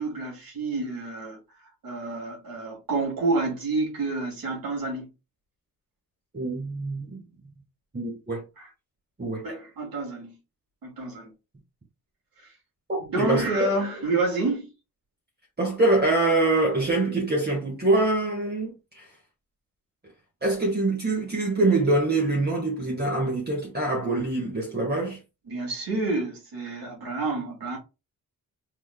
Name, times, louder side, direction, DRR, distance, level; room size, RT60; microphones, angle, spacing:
voice 1, 0.0-1.4 1.8-5.1 8.6-8.7 9.4-10.4 10.8-11.3 12.4-12.5 13.1-14.7 25.5-27.8, right 3 dB, 80° right, 2.5 m, -29 dB
voice 2, 6.3-7.2 7.9-8.4 9.2-9.4 12.9-13.7 15.6-19.1 20.4-25.2, right 2 dB, 30° right, 1.5 m, -24 dB
4.5 x 4.1 x 2.2 m
wide cardioid pair, 95°, 35 cm